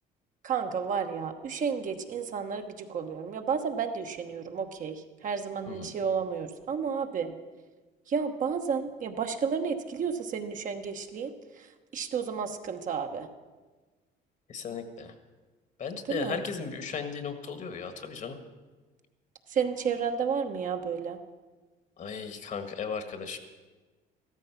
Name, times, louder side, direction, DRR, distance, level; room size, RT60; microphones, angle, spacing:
voice 1, 0.4-7.3 8.1-11.7 11.9-13.3 16.1-16.4 19.5-21.2, right 6 dB, 50° right, 5 dB, 1.1 m, -32 dB
voice 2, 14.5-15.1 15.8-18.4 22.0-23.4, left 6 dB, 50° left, 8 dB, 1.5 m, -36 dB
14.0 x 13.0 x 5.8 m, 1.3 s
cardioid pair, 110°, 17 cm